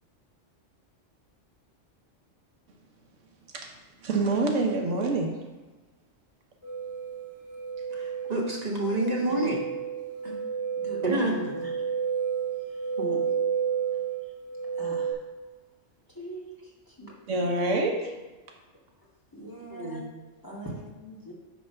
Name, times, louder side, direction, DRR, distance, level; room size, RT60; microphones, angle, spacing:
voice 1, 4.0-5.4 17.3-18.1, right 2 dB, 80° right, 2 dB, 1.3 m, -26 dB
sound 1, 6.6-15.1, right 7 dB, 50° right, 2.1 m, -31 dB
voice 2, 7.9-9.6 11.0-11.5 13.0-13.2 19.7-20.0, right 1 dB, 35° right, -2 dB, 1.4 m, -28 dB
voice 3, 10.8-11.9 12.7-12.8 13.9-14.3 14.7-15.2 16.1-17.5 19.3-20.0 20.4-21.3, right 1 dB, 15° left, -5 dB, 1.6 m, -42 dB
9.4 x 3.4 x 5.5 m, 1.2 s
omnidirectional pair, 1.3 m